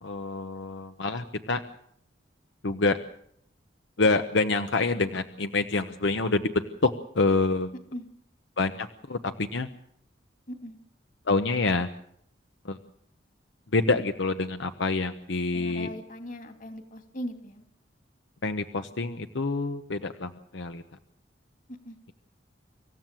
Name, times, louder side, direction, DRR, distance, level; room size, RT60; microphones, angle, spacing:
voice 1, 0.0-1.6 2.6-3.0 4.0-7.7 8.6-9.7 11.3-11.9 12.6-12.8 13.7-15.9 18.4-20.8, left 3 dB, 75° left, 8 dB, 1.0 m, -27 dB
voice 2, 15.5-17.6 21.7-22.1, equal, 45° left, 6 dB, 2.7 m, -39 dB
26.0 x 15.0 x 7.7 m, 0.69 s
head